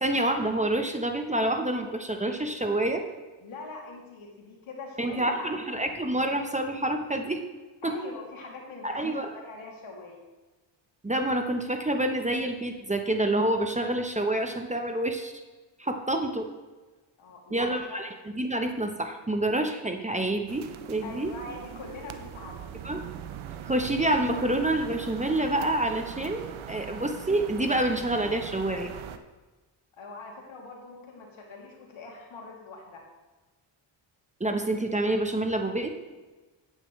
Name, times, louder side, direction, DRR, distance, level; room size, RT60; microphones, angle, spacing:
voice 1, 0.0-3.0 5.0-7.4 7.8-7.9 8.8-9.3 11.0-15.3 15.8-16.5 17.5-18.1 18.3-21.3 22.8-23.0 23.7-28.9 34.4-35.9, right 1 dB, 15° right, 5 dB, 1.0 m, -27 dB
voice 2, 3.4-5.5 7.8-9.0 9.3-10.2 17.2-18.0 21.0-22.8 29.9-33.0, left 3 dB, 75° left, -1 dB, 2.8 m, -42 dB
sound 1, 20.5-29.2, right 9 dB, 75° right, 0.8 m, -41 dB
11.0 x 9.2 x 3.2 m, 1.2 s
cardioid pair, 80°, 49 cm